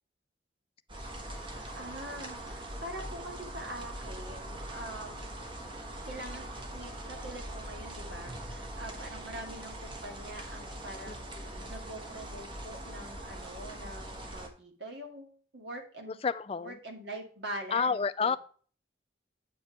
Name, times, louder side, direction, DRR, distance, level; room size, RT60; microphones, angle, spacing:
sound 1, 0.9-14.5, right 1 dB, 25° right, 1.3 m, -42 dB
voice 1, 1.5-5.3 6.1-6.5 6.7-16.2 16.6-18.4, right 1 dB, 65° right, 3 dB, 2.2 m, -44 dB
voice 2, 11.0-11.7 16.2-16.8 17.7-18.4, left 5 dB, 30° left, 14 dB, 0.4 m, -31 dB
8.5 x 5.1 x 4.3 m, 0.43 s
head